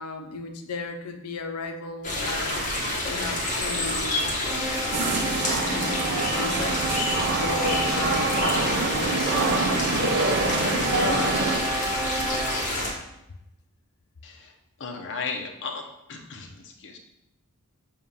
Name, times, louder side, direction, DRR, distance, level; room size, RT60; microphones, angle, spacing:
voice 1, 0.0-2.6 3.1-4.3 5.7-6.8 7.4-9.3 10.6-11.6, left 3 dB, 90° left, 5 dB, 0.8 m, -34 dB
sound 1, 2.0-12.9, left 1 dB, 35° left, 1.5 m, -28 dB
sound 2, 4.4-13.0, right 1 dB, 10° right, 0.6 m, -32 dB
sound 3, 4.9-11.6, right 3 dB, 50° right, 0.6 m, -27 dB
voice 2, 14.8-15.8 16.1-17.0, left 4 dB, 60° left, 2 dB, 0.8 m, -35 dB
7.5 x 2.5 x 5.6 m, 0.83 s
head